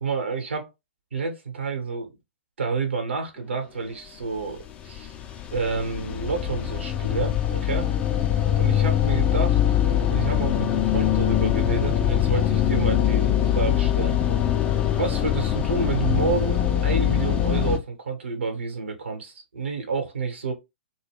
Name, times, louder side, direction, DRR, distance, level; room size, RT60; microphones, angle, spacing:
voice 1, 0.0-0.7 1.1-2.1 2.6-5.1 5.5-7.9 8.6-9.6 10.1-14.2 14.9-20.5, right 4 dB, 70° right, 1.0 m, -29 dB
sound 1, 4.6-17.8, left 10 dB, 20° left, 0.4 m, -23 dB
2.2 x 2.1 x 3.4 m
figure-of-eight pair, 120°, 6 cm